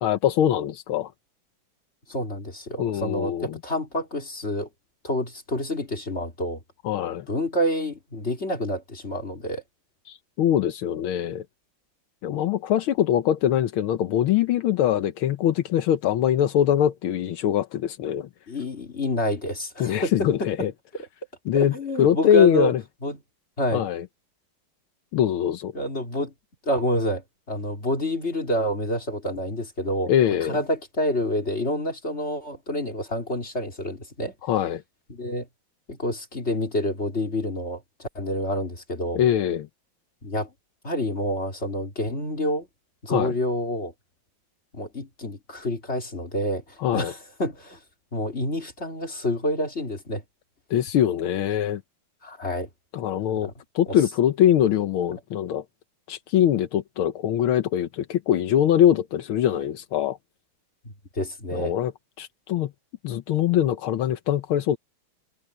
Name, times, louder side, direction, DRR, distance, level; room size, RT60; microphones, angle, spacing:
voice 1, 0.0-1.1 2.8-3.6 6.8-7.3 10.1-11.5 12.2-18.3 19.8-20.7 21.5-22.8 23.7-24.0 25.1-25.7 30.1-30.6 34.4-34.8 39.1-39.7 43.1-43.3 46.8-47.1 50.7-51.8 52.9-53.5 53.8-55.6 56.1-60.2 61.5-61.9 62.2-62.7 63.0-64.8, left 10 dB, 85° left, 1.8 m, -23 dB
voice 2, 2.1-4.7 5.0-6.6 7.3-9.6 18.5-20.5 21.5-22.7 23.0-23.2 23.6-23.9 25.7-26.3 26.6-30.1 30.4-34.3 35.1-35.5 35.9-39.2 40.2-40.5 40.8-42.7 43.0-43.9 44.7-47.8 48.1-50.2 52.2-52.7 53.4-53.5 53.9-54.0 60.8-61.7, equal, 30° left, 3.5 m, -28 dB
omnidirectional pair, 2.3 m